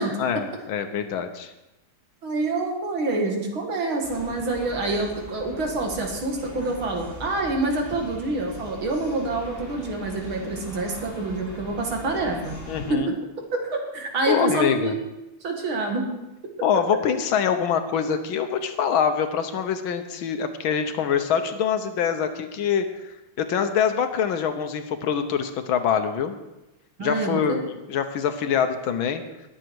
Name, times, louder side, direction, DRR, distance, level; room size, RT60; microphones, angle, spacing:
voice 1, 0.2-1.5 12.7-13.1 14.3-14.9 16.6-23.1 23.4-26.4 27.0-29.2, left 7 dB, 70° left, 8 dB, 1.7 m, -24 dB
voice 2, 2.2-12.6 12.9-13.1 13.5-14.9 15.4-16.1 27.0-27.6, right 2 dB, 70° right, 2 dB, 2.8 m, -27 dB
sound 1, 4.0-12.9, equal, 5° right, 6.3 m, -41 dB
21.0 x 7.7 x 4.7 m, 0.97 s
omnidirectional pair, 2.3 m